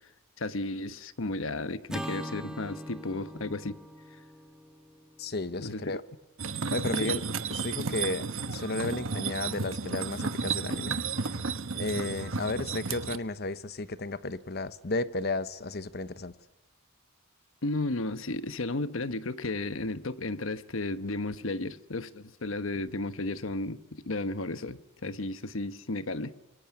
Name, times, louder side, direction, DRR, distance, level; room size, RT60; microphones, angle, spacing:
voice 1, 0.4-3.8 4.1-4.2 5.6-6.0 7.0-7.2 17.6-26.3, left 2 dB, 70° left, 1.1 m, -34 dB
Acoustic guitar / Strum, 1.9-6.3, equal, 5° right, 1.6 m, -42 dB
voice 2, 5.2-6.0 6.7-7.2 7.5-11.0 11.2-11.3 11.7-16.3, left 2 dB, 50° left, 1.1 m, -33 dB
sound 1, 6.4-13.2, right 5 dB, 70° right, 1.2 m, -33 dB
26.5 x 23.0 x 8.5 m
head